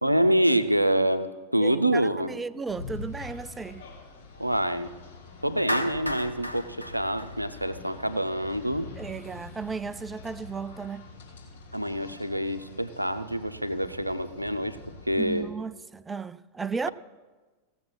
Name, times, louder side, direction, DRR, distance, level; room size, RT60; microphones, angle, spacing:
voice 1, 0.0-2.3 4.4-4.9 5.4-8.9 11.7-14.8 15.1-15.5, right 1 dB, 90° right, 0.6 m, -26 dB
voice 2, 1.6-3.9 9.0-11.1 15.2-16.9, right 5 dB, 15° right, 0.3 m, -35 dB
sound 1, 2.7-15.4, left 4 dB, 65° left, 2.9 m, -45 dB
Clapping, 5.7-8.0, left 1 dB, 90° left, 0.7 m, -33 dB
16.5 x 7.1 x 6.1 m
figure-of-eight pair, 90°, 0 cm